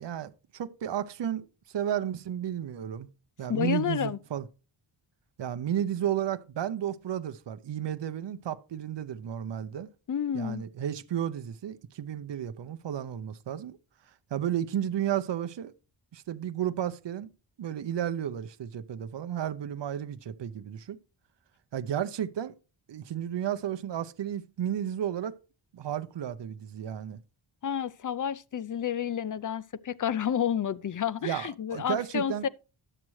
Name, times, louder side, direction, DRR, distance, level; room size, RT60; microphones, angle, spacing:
voice 1, 0.0-3.1 3.4-4.4 5.4-9.9 10.3-13.8 14.3-15.7 16.1-17.3 17.6-21.0 21.7-22.6 22.9-25.4 25.7-27.2 31.2-32.5, right 10 dB, 60° right, 0.6 m, -33 dB
voice 2, 3.5-4.2 10.1-10.6 27.6-32.5, left 9 dB, 45° left, 0.4 m, -30 dB
11.0 x 7.3 x 3.1 m
wide cardioid pair, 105°, 48 cm